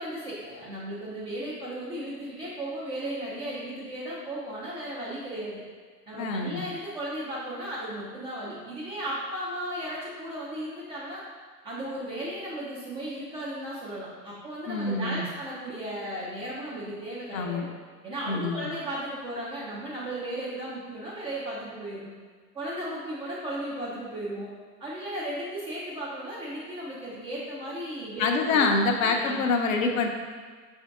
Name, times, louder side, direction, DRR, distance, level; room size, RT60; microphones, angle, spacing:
voice 1, 0.0-5.6 6.1-11.2 11.6-17.7 18.0-22.1 22.5-24.5 24.8-28.7 29.0-29.4, right 1 dB, 10° right, -8 dB, 0.4 m, -35 dB
voice 2, 6.2-6.6 14.7-15.3 17.3-17.7 18.3-18.7 28.2-30.1, left 3 dB, 55° left, 3 dB, 0.7 m, -26 dB
5.6 x 2.7 x 3.5 m, 1.5 s
figure-of-eight pair, 90°, 49 cm